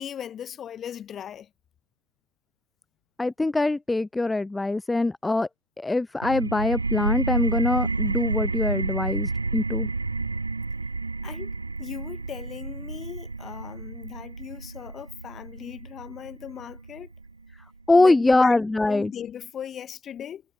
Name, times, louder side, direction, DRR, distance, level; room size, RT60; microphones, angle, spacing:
voice 1, 0.0-1.5 11.2-11.5 11.8-17.1 17.9-18.6 18.9-20.4, left 9 dB, 25° left, 1.8 m, -38 dB
voice 2, 3.2-5.5 5.8-9.9 17.9-19.1, left 2 dB, 5° left, 0.3 m, -23 dB
sound 1, 6.2-17.6, right 3 dB, 80° right, 1.4 m, -30 dB
figure-of-eight pair, 90°, 0 cm